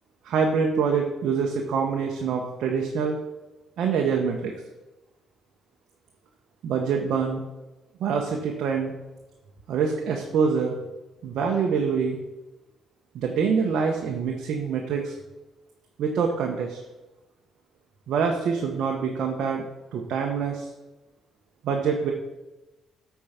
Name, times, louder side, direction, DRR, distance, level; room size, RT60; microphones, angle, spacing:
voice 1, 0.2-3.2 3.8-4.5 6.6-7.4 8.0-8.9 9.7-10.8 11.2-12.2 13.1-15.1 16.0-16.8 18.1-19.6 19.9-20.7 21.6-22.1, right 6 dB, 75° right, 1 dB, 1.0 m, -25 dB
8.6 x 4.6 x 5.7 m, 1.1 s
cardioid pair, 90°, 0 cm